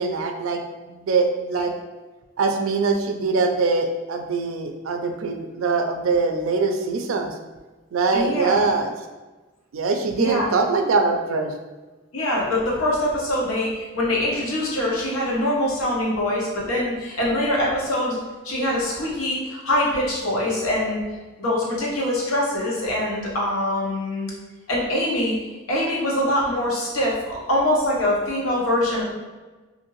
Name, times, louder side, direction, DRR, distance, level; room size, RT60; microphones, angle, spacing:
voice 1, 0.0-1.8 2.4-7.3 7.9-8.9 9.7-11.5, right 4 dB, 75° right, 5 dB, 0.4 m, -23 dB
voice 2, 8.1-8.6 10.2-10.4 12.1-18.2 18.4-21.0 21.4-24.3 24.7-25.4 25.7-29.0, left 1 dB, 85° left, -4 dB, 0.9 m, -23 dB
2.6 x 2.6 x 3.0 m, 1.2 s
head